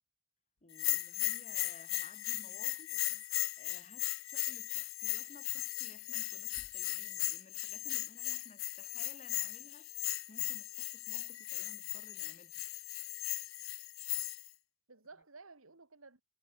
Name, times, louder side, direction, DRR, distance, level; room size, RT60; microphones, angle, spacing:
voice 1, 0.6-2.9 3.2-12.7, left 2 dB, 35° left, 2.9 m, -58 dB
Bell, 0.7-14.5, left 17 dB, 70° left, 1.4 m, -37 dB
voice 2, 2.4-3.2 14.9-16.2, right 3 dB, 70° right, 2.7 m, -56 dB
head